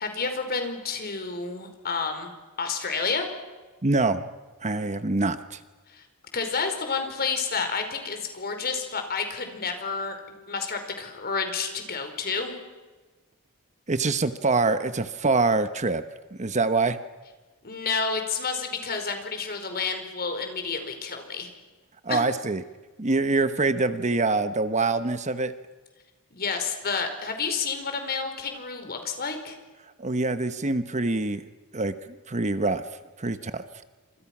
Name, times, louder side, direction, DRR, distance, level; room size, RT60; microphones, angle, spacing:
voice 1, 0.0-2.3 2.6-3.3 5.9-6.0 6.3-12.6 17.6-21.5 22.1-22.2 26.3-29.6, left 5 dB, 45° left, 6 dB, 4.8 m, -30 dB
voice 2, 3.8-4.3 4.6-5.6 13.9-16.0 16.4-17.0 22.0-22.6 23.0-25.5 30.0-31.4 31.7-31.9 32.3-32.8 33.2-33.6, right 3 dB, 30° right, 11 dB, 1.1 m, -25 dB
29.5 x 26.5 x 6.1 m, 1.3 s
head